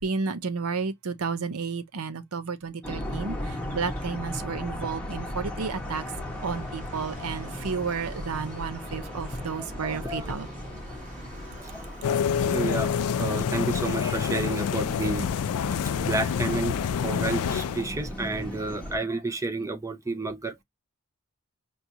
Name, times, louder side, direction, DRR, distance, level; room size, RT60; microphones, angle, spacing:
voice 1, 0.0-6.0 6.4-10.5, right 5 dB, 85° right, 0.7 m, -32 dB
sound 1, 2.8-19.0, left 1 dB, 5° left, 1.1 m, -37 dB
sound 2, 5.6-18.6, right 1 dB, 35° right, 1.6 m, -51 dB
voice 2, 9.6-10.3 10.9-11.0 11.5-15.3 15.9-16.8 17.0-20.6, right 3 dB, 15° right, 0.6 m, -31 dB
sound 3, 12.0-17.9, left 7 dB, 90° left, 0.4 m, -27 dB
5.9 x 2.3 x 2.7 m
head